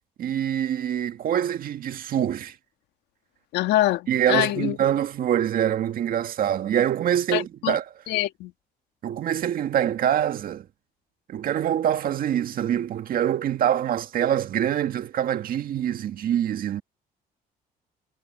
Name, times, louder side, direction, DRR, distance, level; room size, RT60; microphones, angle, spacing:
voice 1, 0.2-2.5 4.1-7.8 9.0-10.7 11.3-16.8, right 10 dB, 55° right, 1.9 m, -25 dB
voice 2, 3.5-4.8 7.3-7.8 8.1-8.5, left 15 dB, 85° left, 2.0 m, -24 dB
cardioid pair, 110°, 17 cm